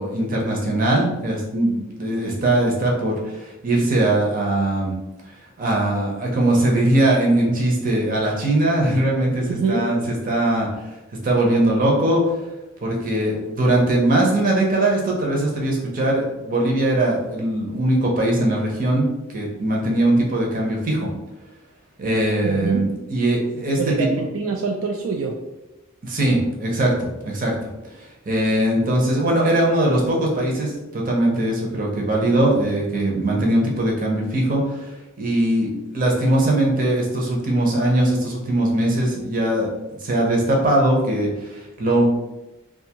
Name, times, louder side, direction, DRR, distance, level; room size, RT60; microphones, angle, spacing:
voice 1, 0.0-4.9 5.6-10.7 11.2-12.2 12.8-19.1 19.3-21.1 22.0-23.9 26.0-27.5 27.9-34.9 35.2-39.7 40.0-42.1, right 1 dB, 40° right, -1 dB, 0.7 m, -20 dB
voice 2, 9.5-9.9 22.4-22.8 23.8-25.4, right 4 dB, 70° right, 1 dB, 0.3 m, -25 dB
2.6 x 2.3 x 2.8 m, 0.99 s
head